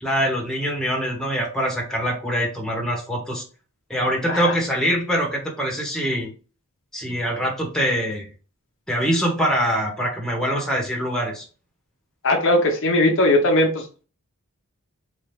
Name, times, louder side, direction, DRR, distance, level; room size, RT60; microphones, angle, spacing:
voice 1, 0.0-3.4 3.9-6.3 6.9-8.3 8.9-11.5, equal, 5° left, -1 dB, 1.3 m, -24 dB
voice 2, 12.2-14.0, left 1 dB, 60° left, 3 dB, 0.8 m, -19 dB
4.4 x 2.9 x 3.4 m, 0.36 s
head